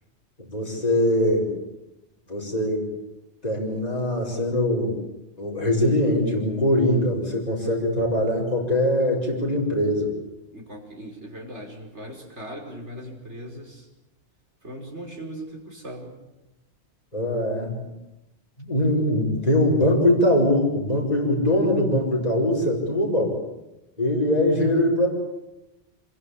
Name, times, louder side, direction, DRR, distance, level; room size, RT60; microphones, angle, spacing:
voice 1, 0.4-1.5 2.3-2.9 3.4-4.9 5.4-10.1 17.1-17.8 18.6-23.4 24.0-25.1, left 1 dB, 35° left, -1 dB, 5.3 m, -22 dB
voice 2, 10.5-13.9 14.6-16.1, right 1 dB, 85° right, 1 dB, 6.0 m, -39 dB
26.5 x 22.0 x 8.6 m, 0.95 s
omnidirectional pair, 1.1 m